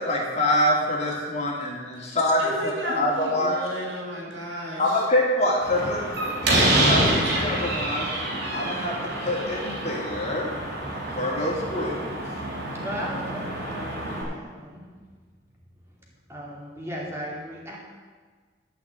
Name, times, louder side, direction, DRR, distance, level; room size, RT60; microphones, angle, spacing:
voice 1, 0.0-2.4 2.8-3.6 4.8-6.4 6.8-8.1 8.5-10.5 11.1-12.2, left 1 dB, 40° left, -3 dB, 2.6 m, -25 dB
voice 2, 2.0-5.1, right 1 dB, 85° right, -4 dB, 4.0 m, -34 dB
Slam, 5.6-14.2, right 1 dB, 65° right, 3.4 m, -27 dB
voice 3, 12.7-14.9 16.3-17.8, equal, 15° right, -4 dB, 2.6 m, -36 dB
12.0 x 5.9 x 7.9 m, 1.5 s
head